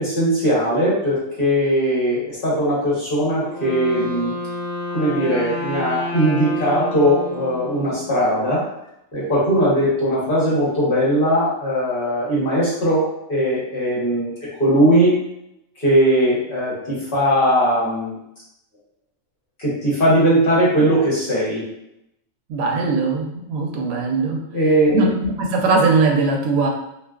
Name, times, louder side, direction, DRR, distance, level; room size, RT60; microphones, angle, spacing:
voice 1, 0.0-4.3 4.9-8.6 9.1-14.3 14.6-15.2 15.8-18.1 19.6-21.6 24.5-25.1, equal, 45° left, -7 dB, 1.1 m, -19 dB
Wind instrument woodwind instrument, 3.4-8.3, left 2 dB, 60° left, 0.8 m, -30 dB
voice 2, 22.5-24.4 24.9-26.7, right 3 dB, 85° right, 1 dB, 1.0 m, -20 dB
2.6 x 2.3 x 2.2 m, 0.83 s
omnidirectional pair, 1.4 m